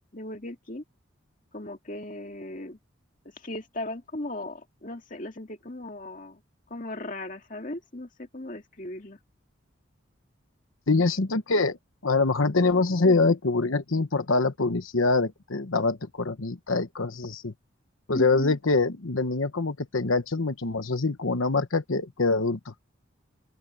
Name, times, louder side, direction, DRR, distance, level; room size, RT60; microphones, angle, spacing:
voice 1, 0.1-0.8 1.5-2.8 3.4-6.4 6.7-9.2 18.1-18.6, left 1 dB, 40° left, 2.1 m, -37 dB
voice 2, 10.9-11.8 12.0-17.5 18.1-22.7, left 3 dB, 85° left, 1.1 m, -24 dB
open air
head